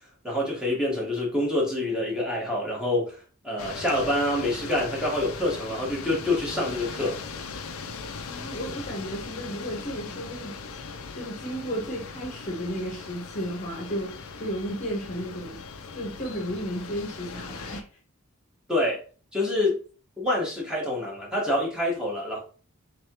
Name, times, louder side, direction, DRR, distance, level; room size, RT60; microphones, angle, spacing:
voice 1, 0.2-3.2 3.4-7.2 18.7-19.0 19.3-19.8 20.2-22.4, left 1 dB, 5° right, 1.4 m, -26 dB
sound 1, 3.6-17.8, left 5 dB, 70° left, 0.5 m, -39 dB
voice 2, 8.3-10.6 11.1-15.6 15.9-17.9, equal, 35° left, 1.0 m, -33 dB
3.6 x 3.3 x 2.9 m
head